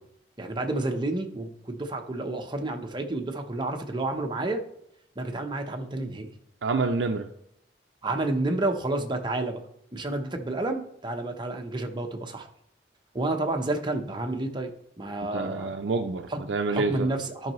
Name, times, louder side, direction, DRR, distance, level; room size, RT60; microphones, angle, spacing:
voice 1, 0.4-4.6 5.2-6.3 8.0-9.6 9.9-12.5 13.1-14.7 15.0-15.7 16.3-16.4 16.7-17.5, right 2 dB, 25° right, 4 dB, 0.8 m, -30 dB
voice 2, 6.6-7.3 15.3-17.1, right 3 dB, 85° right, 5 dB, 0.5 m, -27 dB
12.0 x 5.5 x 3.1 m, 0.76 s
head